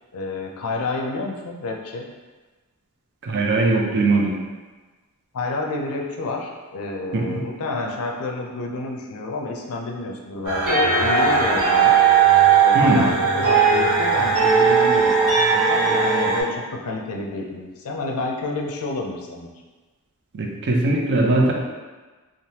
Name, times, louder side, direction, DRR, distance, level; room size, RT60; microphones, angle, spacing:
voice 1, 0.1-2.1 5.3-12.0 12.6-19.5, left 2 dB, 65° left, 1 dB, 0.4 m, -29 dB
voice 2, 3.2-4.4 7.1-7.4 12.7-13.1 20.3-21.5, right 2 dB, 50° right, 0 dB, 0.4 m, -20 dB
sound 1, 10.4-16.4, right 6 dB, 80° right, 1.0 m, -17 dB
3.2 x 2.0 x 2.7 m, 1.3 s
head